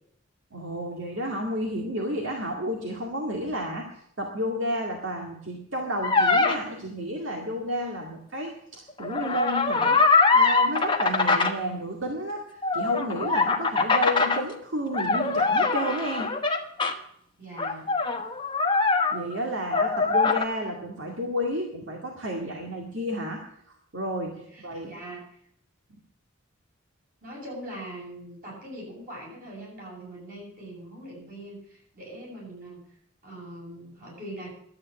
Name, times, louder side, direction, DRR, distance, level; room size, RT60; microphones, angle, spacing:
voice 1, 0.5-3.9 4.2-10.0 10.3-16.3 19.1-24.9, equal, 65° right, 1 dB, 2.0 m, -31 dB
sound 1, 6.0-6.6 9.0-11.5 12.6-14.4 14.9-16.9 17.6-19.5 19.7-20.4, left 4 dB, 20° left, 1.1 m, -23 dB
voice 2, 17.4-17.9 24.3-25.4 27.2-32.8 33.2-34.5, right 1 dB, 40° right, -3 dB, 7.8 m, -42 dB
12.5 x 8.7 x 8.6 m, 0.70 s
head